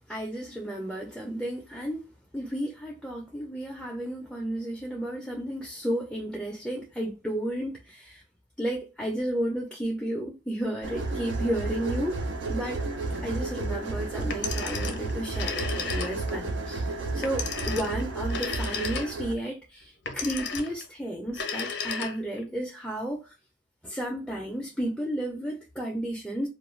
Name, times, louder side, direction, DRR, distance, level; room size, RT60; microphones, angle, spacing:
voice 1, 0.1-2.1 2.3-8.2 8.6-12.2 12.5-16.9 17.1-23.3 23.8-26.5, right 1 dB, ahead, 0.4 m, -33 dB
sound 1, 10.8-19.4, right 2 dB, 80° right, 0.5 m, -32 dB
Telephone, 14.2-16.4 17.2-19.4 20.1-20.9 21.3-22.4, left 5 dB, 65° left, 0.5 m, -34 dB
2.3 x 2.2 x 3.0 m
head